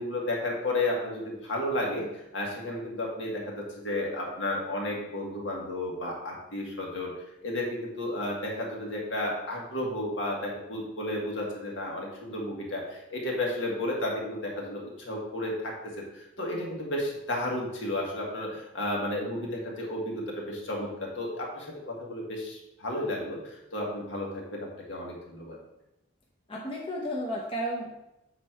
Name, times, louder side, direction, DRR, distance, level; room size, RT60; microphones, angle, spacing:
voice 1, 0.0-7.1 7.4-25.6, left 1 dB, 65° left, -2 dB, 1.9 m, -33 dB
voice 2, 26.5-27.9, equal, 25° left, -4 dB, 0.9 m, -32 dB
7.5 x 4.2 x 4.6 m, 0.89 s
head